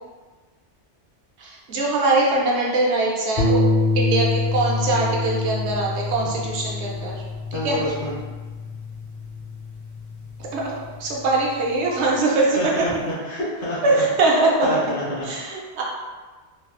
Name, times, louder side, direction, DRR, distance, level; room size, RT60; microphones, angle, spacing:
voice 1, 1.4-3.6 3.9-7.2 7.5-7.8 10.5-12.9 13.8-14.9 15.2-15.8, right 2 dB, 75° right, -3 dB, 0.9 m, -22 dB
sound 1, 3.4-11.8, left 3 dB, 35° left, 0.5 m, -26 dB
voice 2, 7.5-8.1 12.6-13.8 14.6-15.3, equal, 50° left, -7 dB, 1.1 m, -28 dB
3.2 x 2.4 x 2.4 m, 1.3 s
omnidirectional pair, 1.2 m